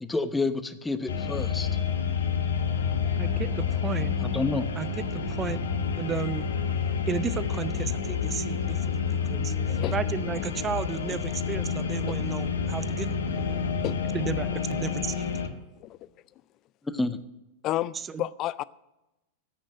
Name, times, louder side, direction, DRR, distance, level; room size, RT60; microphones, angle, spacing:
voice 1, 0.0-1.7 4.2-4.6 16.9-17.2, left 3 dB, 10° left, 13 dB, 0.8 m, -29 dB
sound 1, 1.1-15.5, left 6 dB, 65° left, 1.2 m, -29 dB
voice 2, 3.2-4.1 4.8-5.6 5.9-6.5 7.1-13.2 14.1-15.3 18.1-18.2, right 7 dB, 20° right, 16 dB, 0.6 m, -34 dB
voice 3, 13.5-14.0 15.8-16.1 17.6-18.6, left 14 dB, 35° left, 20 dB, 0.4 m, -32 dB
9.9 x 8.5 x 8.9 m, 0.95 s
figure-of-eight pair, 90°, 0 cm